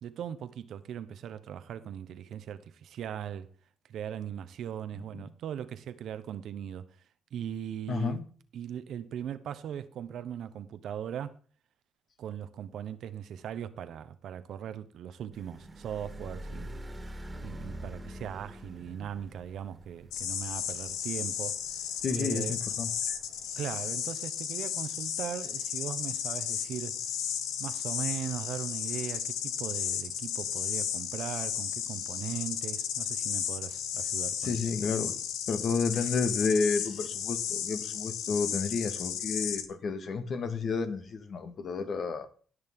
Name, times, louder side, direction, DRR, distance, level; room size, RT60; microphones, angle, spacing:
voice 1, 0.0-3.5 3.9-6.9 7.3-8.2 8.5-11.4 12.2-16.8 17.1-21.5 22.1-22.6 23.6-27.0 27.6-34.6, right 9 dB, 75° right, 1.1 m, -39 dB
voice 2, 7.9-8.2 22.0-23.2 34.4-35.2 35.5-42.3, left 4 dB, 60° left, 1.9 m, -31 dB
sound 1, 15.3-23.6, equal, 25° right, 2.0 m, -46 dB
sound 2, 20.1-39.7, left 9 dB, 85° left, 1.3 m, -34 dB
18.0 x 6.5 x 3.7 m
supercardioid pair, 65°, 0 cm